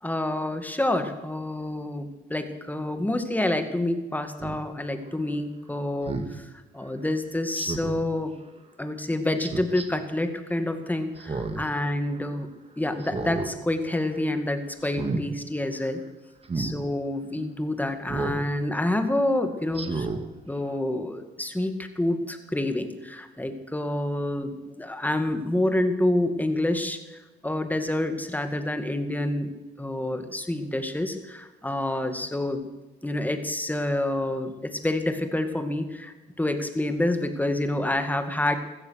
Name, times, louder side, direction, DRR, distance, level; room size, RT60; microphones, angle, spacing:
voice 1, 0.0-6.5 6.7-8.3 8.8-12.5 12.8-16.0 16.5-20.1 20.5-27.0 27.4-29.5 29.8-32.7 33.0-38.6, left 1 dB, 10° left, 7 dB, 2.1 m, -28 dB
Speech synthesizer, 4.4-4.6 6.0-6.3 7.5-8.0 9.4-9.9 11.2-11.7 12.1-12.2 13.0-13.5 13.9-14.2 14.8-15.2 16.4-16.7 18.1-18.4 18.9-19.0 19.7-20.2 20.7-20.8, right 3 dB, 30° right, 2.1 m, -31 dB
16.0 x 14.0 x 6.5 m, 1.1 s
cardioid pair, 90°, 20 cm